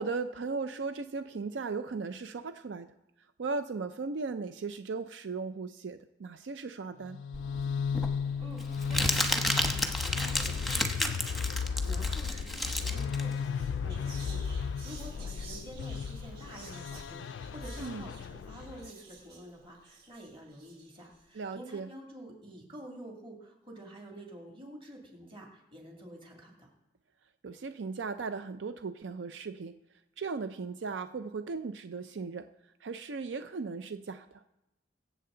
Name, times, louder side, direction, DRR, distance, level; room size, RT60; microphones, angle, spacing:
voice 1, 0.0-2.9 3.4-7.2 17.8-18.1 21.3-21.9 27.4-29.7 30.2-32.5 32.8-34.4, right 4 dB, 80° right, 10 dB, 0.5 m, -37 dB
sound 1, 7.0-18.9, left 6 dB, 80° left, 0.3 m, -35 dB
Crumpling crinkling, 7.3-14.4, left 1 dB, ahead, 0.9 m, -32 dB
voice 2, 8.4-26.7, right 1 dB, 30° right, 0 dB, 2.5 m, -49 dB
Whispering, 13.1-21.2, right 2 dB, 60° right, 4.0 m, -51 dB
22.5 x 7.8 x 3.8 m, 0.93 s
head